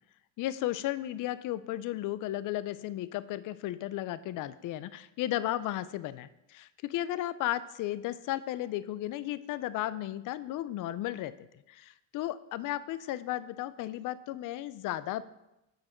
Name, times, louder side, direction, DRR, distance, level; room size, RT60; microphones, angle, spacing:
voice 1, 0.4-11.3 11.7-15.2, left 14 dB, 50° left, 15 dB, 0.4 m, -34 dB
7.3 x 6.5 x 4.4 m, 0.89 s
cardioid pair, 135°, 44 cm